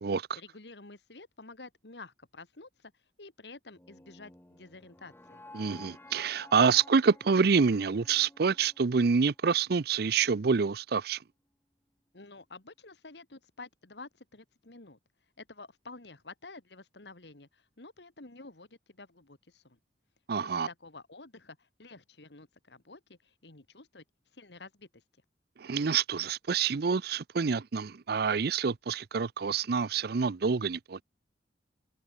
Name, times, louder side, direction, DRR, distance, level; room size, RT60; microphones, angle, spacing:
voice 1, 0.4-2.9 3.2-5.4 12.1-15.0 15.4-19.8 20.4-24.0 24.3-25.0, left 3 dB, 75° left, 2.2 m, -50 dB
sound 1, 3.7-9.8, left 2 dB, 15° left, 1.2 m, -54 dB
voice 2, 5.5-11.2 20.3-20.7 25.6-31.0, right 5 dB, 60° right, 0.5 m, -27 dB
head